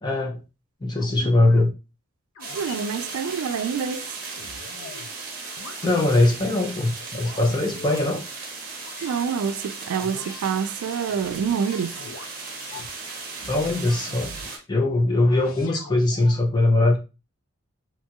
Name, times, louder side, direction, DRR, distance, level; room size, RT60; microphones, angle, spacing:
voice 1, 0.0-0.4 0.8-1.7 5.8-8.2 13.5-14.3 14.7-17.0, left 2 dB, 20° left, 0.4 m, -21 dB
sound 1, 0.9-1.6 2.3-2.9 3.3-5.1 5.5-6.4 6.9-8.1 8.7-9.3 9.9-10.6 11.0-12.9 13.4-14.6 15.2-16.4, left 3 dB, 80° left, 0.5 m, -43 dB
sound 2, 2.4-14.6, right 4 dB, 40° right, 0.7 m, -37 dB
voice 2, 2.5-4.1 9.0-12.1, right 7 dB, 90° right, 0.3 m, -27 dB
2.9 x 2.3 x 2.8 m
head